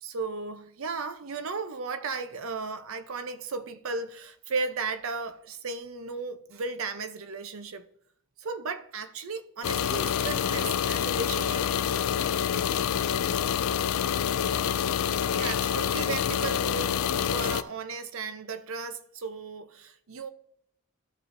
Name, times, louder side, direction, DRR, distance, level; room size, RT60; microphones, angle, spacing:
voice 1, 0.0-7.9 8.4-11.7 15.3-20.3, right 4 dB, 70° right, 0.6 m, -35 dB
sound 1, 9.6-17.6, left 8 dB, 75° left, 0.3 m, -27 dB
13.5 x 5.2 x 2.6 m
head